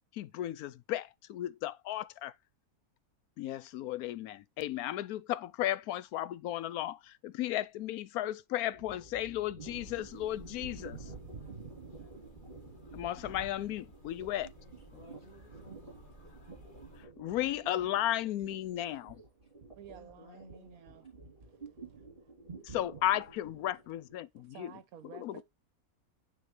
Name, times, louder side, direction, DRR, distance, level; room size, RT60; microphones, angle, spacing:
voice 1, 0.1-2.3 3.4-11.0 12.9-14.5 17.2-19.2 22.6-24.7 25.1-25.4, left 13 dB, 75° left, 1.0 m, -35 dB
sound 1, 8.7-24.1, right 4 dB, 35° right, 3.4 m, -50 dB
sound 2, 9.6-17.1, right 1 dB, 30° left, 2.0 m, -55 dB
voice 2, 14.9-16.1 18.8-19.5 19.9-21.1, left 3 dB, 55° left, 1.7 m, -58 dB
voice 3, 19.7-21.1 21.4-22.0 24.3-25.4, right 9 dB, 70° right, 1.2 m, -53 dB
9.5 x 3.8 x 3.2 m
omnidirectional pair, 1.7 m